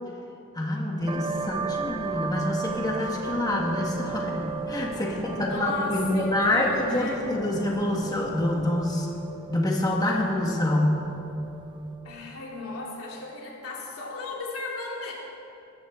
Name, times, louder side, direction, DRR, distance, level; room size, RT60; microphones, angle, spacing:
voice 1, 0.5-9.1 9.5-11.0, left 1 dB, 20° left, -1 dB, 1.5 m, -26 dB
sound 1, 1.0-8.6, right 1 dB, 65° right, 2.4 m, -43 dB
sound 2, 1.1-12.4, right 5 dB, 20° right, 0.3 m, -36 dB
voice 2, 5.3-7.2 12.0-15.1, left 3 dB, 80° left, -2 dB, 2.9 m, -35 dB
21.0 x 13.5 x 3.6 m, 2.8 s
head